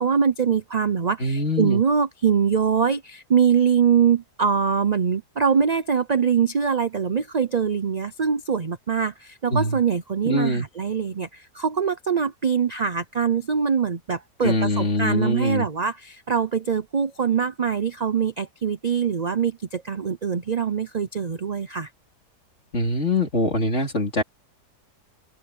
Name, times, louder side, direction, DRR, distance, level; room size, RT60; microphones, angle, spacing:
voice 1, 0.0-21.9, right 6 dB, 55° right, 0.4 m, -23 dB
voice 2, 1.2-1.8 9.5-9.8 10.2-10.7 14.4-15.7 22.7-24.2, left 1 dB, 45° left, 3.8 m, -23 dB
open air
omnidirectional pair, 1.7 m